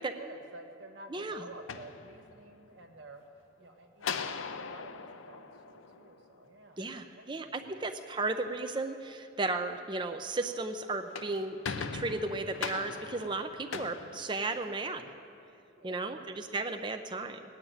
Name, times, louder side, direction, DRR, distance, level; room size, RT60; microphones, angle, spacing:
voice 1, 0.0-7.8 15.8-16.3, right 2 dB, 70° right, 4 dB, 1.5 m, -51 dB
voice 2, 1.1-1.5 6.8-15.1 15.8-17.4, right 3 dB, 25° right, 6 dB, 0.5 m, -35 dB
sound 1, 1.5-2.7 4.0-6.5 10.9-15.0, left 5 dB, 85° left, 0.7 m, -40 dB
19.0 x 7.3 x 9.3 m, 2.6 s
head